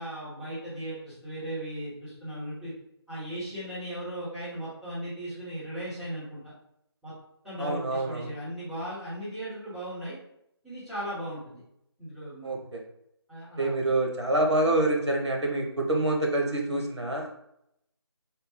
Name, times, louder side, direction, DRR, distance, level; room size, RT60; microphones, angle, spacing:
voice 1, 0.0-2.7 3.1-6.5 7.0-7.1 7.4-10.2 10.6-11.6 12.0-12.6 13.3-13.8, right 1 dB, ahead, -16 dB, 1.1 m, -37 dB
voice 2, 7.6-8.3 12.4-12.8 13.6-17.3, right 2 dB, 90° right, 0 dB, 1.1 m, -26 dB
3.6 x 2.2 x 4.3 m, 0.78 s
figure-of-eight pair, 160°, 14 cm